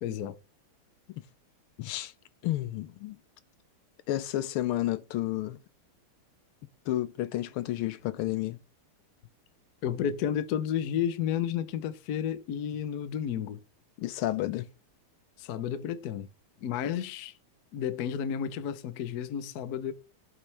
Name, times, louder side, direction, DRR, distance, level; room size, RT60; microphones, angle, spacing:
voice 1, 0.0-0.4 9.8-13.6 15.4-16.3 16.6-17.3 17.7-19.9, left 9 dB, 60° left, 1.0 m, -32 dB
voice 2, 1.8-2.1 2.4-3.2 4.1-5.6 6.9-8.6 14.0-14.7, left 14 dB, 80° left, 1.5 m, -31 dB
11.5 x 7.2 x 3.3 m
omnidirectional pair, 2.4 m